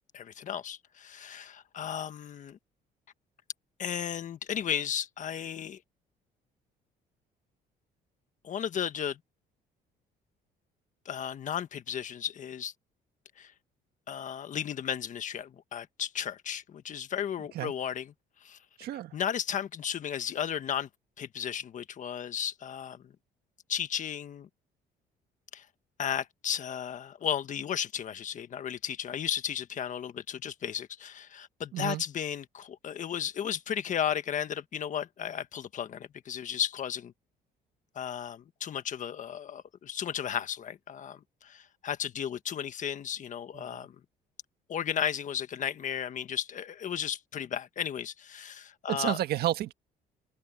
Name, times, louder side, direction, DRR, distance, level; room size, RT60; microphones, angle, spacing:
voice 1, 0.1-2.6 3.8-5.8 8.4-9.2 11.0-12.7 13.4-13.5 14.1-18.1 18.4-18.6 19.1-20.9 21.2-23.0 23.7-24.5 25.5-25.6 26.0-37.1 37.9-43.9 44.7-49.2, left 9 dB, 50° left, 1.5 m, -34 dB
voice 2, 18.8-19.1 31.7-32.0 43.5-43.9 48.9-49.7, right 13 dB, 70° right, 1.6 m, -31 dB
cardioid pair, 110°, 17 cm